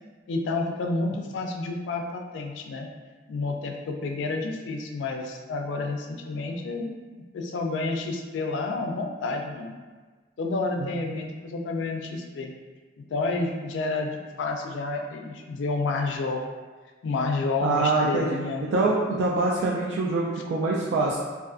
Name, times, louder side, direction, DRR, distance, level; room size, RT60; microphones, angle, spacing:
voice 1, 0.3-2.9 3.3-7.0 7.3-9.7 10.4-12.5 13.0-16.4 17.0-18.6, left 3 dB, 85° left, 2 dB, 0.3 m, -30 dB
voice 2, 17.6-18.3 18.7-21.2, right 3 dB, 85° right, -4 dB, 0.3 m, -24 dB
2.4 x 2.3 x 2.4 m, 1.4 s
head